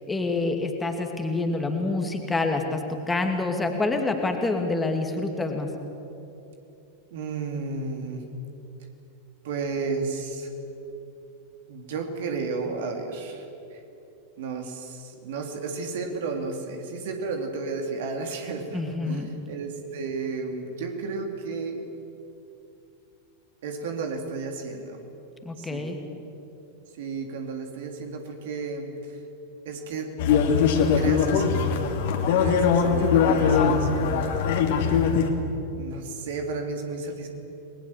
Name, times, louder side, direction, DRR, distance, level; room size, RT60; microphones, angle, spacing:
voice 1, 0.1-5.7 18.7-19.3 25.4-26.0 33.4-33.8, left 3 dB, 10° left, 4 dB, 2.6 m, -27 dB
voice 2, 7.1-8.2 9.4-10.5 11.7-13.8 14.4-21.8 23.6-25.0 25.6-26.2 26.9-29.2 29.6-30.1 30.7-31.9 32.2-34.7 35.7-37.3, right 4 dB, 55° right, 3 dB, 3.4 m, -33 dB
sound 1, 30.2-35.3, left 6 dB, 50° left, 2.8 m, -21 dB
30.0 x 21.0 x 7.6 m, 2.9 s
figure-of-eight pair, 90°, 0 cm